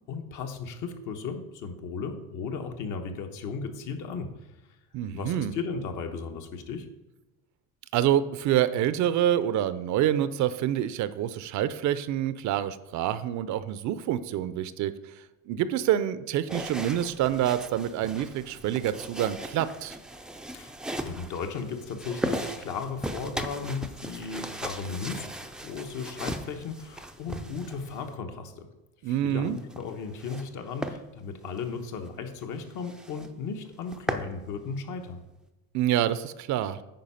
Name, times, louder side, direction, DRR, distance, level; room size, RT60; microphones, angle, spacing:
voice 1, 0.1-4.3 5.1-6.9 20.5-20.8 21.0-25.3 25.6-28.7 29.0-35.2, left 5 dB, 55° left, 6 dB, 1.2 m, -35 dB
voice 2, 4.9-5.5 7.9-14.9 15.5-20.0 29.0-29.6 35.7-36.8, right 11 dB, 55° right, 14 dB, 0.5 m, -27 dB
sound 1, 16.5-28.1 29.4-30.5 30.8-31.0 31.5-31.6 32.1-32.2 32.4-32.5 32.8-33.3 33.7-34.3, right 1 dB, ahead, 0.4 m, -37 dB
9.2 x 4.6 x 5.6 m, 0.99 s
cardioid pair, 135°, 35 cm